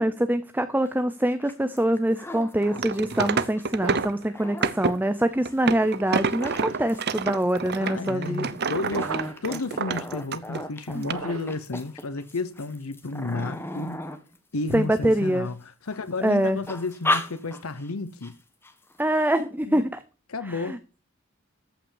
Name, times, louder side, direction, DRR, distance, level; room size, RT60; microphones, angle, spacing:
voice 1, 0.0-8.4 10.9-11.1 14.7-15.5 16.2-16.6 19.0-20.0 20.5-20.8, right 1 dB, 10° right, 0.7 m, -24 dB
sound 1, 0.9-1.0 1.2-3.7 4.1-15.5 15.9-16.3 16.6-17.9 18.2-18.3 18.6-19.0, left 1 dB, 10° left, 1.4 m, -35 dB
sound 2, 2.6-4.2 4.6-5.0 5.4-10.6 11.0-11.1, right 4 dB, 50° right, 0.7 m, -28 dB
sound 3, 3.8-4.3 6.3-7.0 8.9-9.5 11.0-11.7, right 4 dB, 75° right, 1.3 m, -36 dB
voice 2, 7.8-9.1 9.4-14.1 14.5-18.3 19.7-19.8 20.3-20.8, left 3 dB, 90° left, 0.9 m, -32 dB
14.5 x 5.7 x 7.2 m
head